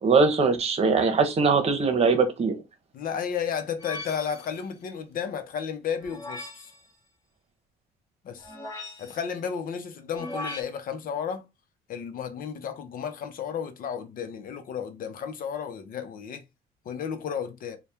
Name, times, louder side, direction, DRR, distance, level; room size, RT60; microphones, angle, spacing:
voice 1, 0.0-2.6, right 4 dB, 40° right, 1.0 m, -21 dB
voice 2, 2.9-6.7 8.2-8.5 9.0-11.4 11.9-16.4 16.9-17.8, left 7 dB, 55° left, 0.8 m, -33 dB
sound 1, 3.8-4.6 6.0-6.8 8.4-9.3 10.1-10.6, left 2 dB, 15° left, 1.3 m, -39 dB
4.1 x 2.3 x 3.5 m
cardioid pair, 110°, 17 cm